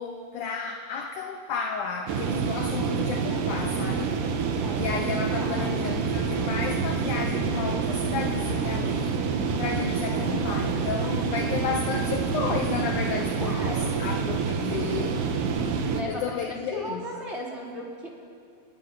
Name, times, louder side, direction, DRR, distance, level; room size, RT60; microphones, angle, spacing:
voice 1, 0.0-4.2 4.7-9.2 9.6-15.3 16.1-17.1, left 6 dB, 70° left, 4 dB, 1.9 m, -32 dB
sound 1, 2.1-16.0, right 5 dB, 85° right, 3.8 m, -27 dB
voice 2, 4.6-4.9 5.3-5.8 13.4-14.0 15.7-16.3 16.7-18.1, equal, 15° right, -3 dB, 3.4 m, -37 dB
28.5 x 21.5 x 5.8 m, 2.5 s
omnidirectional pair, 4.8 m